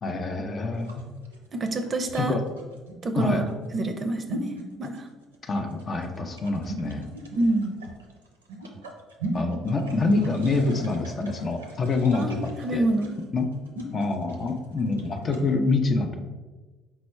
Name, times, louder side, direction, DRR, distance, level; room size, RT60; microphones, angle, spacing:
voice 1, 0.0-1.1 2.2-2.4 3.2-3.4 5.4-7.1 9.3-12.8 13.3-13.5 13.9-16.2, left 3 dB, 40° left, 5 dB, 0.5 m, -26 dB
sound 1, 0.7-15.5, right 2 dB, 90° right, 0.5 m, -39 dB
voice 2, 1.5-2.4 3.0-3.5 3.7-4.5 4.8-5.1 7.4-7.8 12.1-13.1, right 2 dB, 35° right, 7 dB, 0.5 m, -27 dB
4.5 x 2.0 x 4.4 m, 1.3 s
hypercardioid pair, 55°, 0 cm